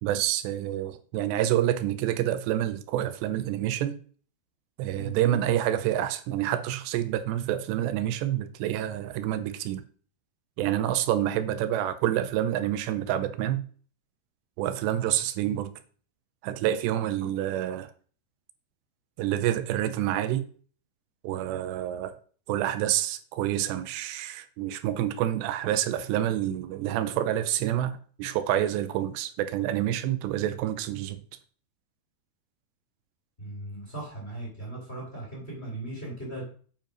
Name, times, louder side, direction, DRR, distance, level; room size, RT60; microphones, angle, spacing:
voice 1, 0.0-4.0 4.8-9.8 10.6-13.7 14.6-15.7 16.4-17.9 19.2-20.5 21.2-22.1 22.5-31.2, right 12 dB, 85° right, 2.9 m, -28 dB
voice 2, 33.4-36.4, right 2 dB, 15° left, 2.7 m, -38 dB
9.1 x 5.3 x 5.2 m
omnidirectional pair, 5.0 m